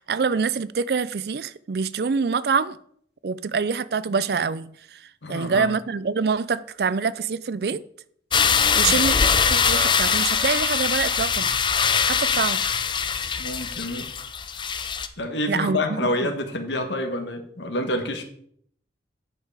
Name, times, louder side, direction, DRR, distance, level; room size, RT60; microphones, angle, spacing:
voice 1, 0.0-2.8 3.2-7.8 8.4-9.2 9.5-11.5 12.0-12.6 15.5-16.3, right 5 dB, 60° right, 0.4 m, -26 dB
voice 2, 5.2-5.7 8.9-9.0 13.4-14.1 15.2-18.2, left 1 dB, 85° left, 1.4 m, -28 dB
sound 1, 8.3-15.1, left 6 dB, 25° left, 0.5 m, -22 dB
9.5 x 5.5 x 4.8 m
head